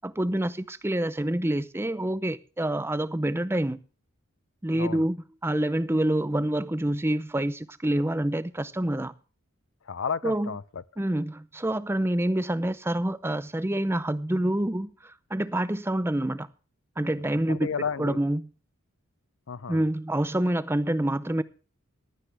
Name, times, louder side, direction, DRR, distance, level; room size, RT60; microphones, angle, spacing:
voice 1, 0.0-3.8 4.6-5.2 5.4-9.1 10.2-10.5 11.0-16.5 17.0-17.7 18.0-18.5 19.7-21.4, right 1 dB, 10° right, 0.6 m, -27 dB
voice 2, 4.7-5.0 9.8-10.8 17.5-18.2 19.5-19.8, left 6 dB, 60° left, 0.5 m, -32 dB
16.0 x 12.0 x 3.4 m
head